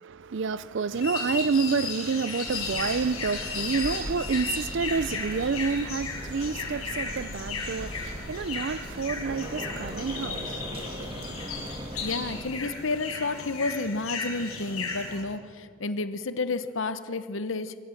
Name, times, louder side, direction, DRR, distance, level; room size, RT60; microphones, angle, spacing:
voice 1, 0.0-10.9, right 5 dB, 55° right, 0.5 m, -29 dB
sound 1, 0.9-15.2, left 4 dB, 85° left, 6.1 m, -35 dB
sound 2, 2.5-12.4, equal, 25° right, 2.7 m, -39 dB
voice 2, 12.0-17.8, left 3 dB, 65° left, 0.8 m, -31 dB
25.5 x 14.0 x 7.8 m
head